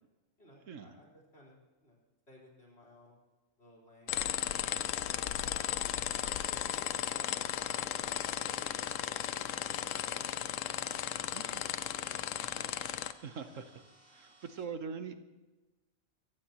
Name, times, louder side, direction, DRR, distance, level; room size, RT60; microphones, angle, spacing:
voice 1, 0.4-2.0 2.3-3.2 3.6-5.0, left 1 dB, 50° left, -2 dB, 4.7 m, -61 dB
sound 1, 4.1-13.1, left 11 dB, 75° left, 1.0 m, -35 dB
sound 2, 5.6-14.6, right 1 dB, 45° right, 3.0 m, -62 dB
voice 2, 11.3-11.6 13.2-13.8 14.1-15.1, right 6 dB, 70° right, 9 dB, 1.3 m, -42 dB
23.0 x 15.5 x 3.0 m, 1.1 s
omnidirectional pair, 1.4 m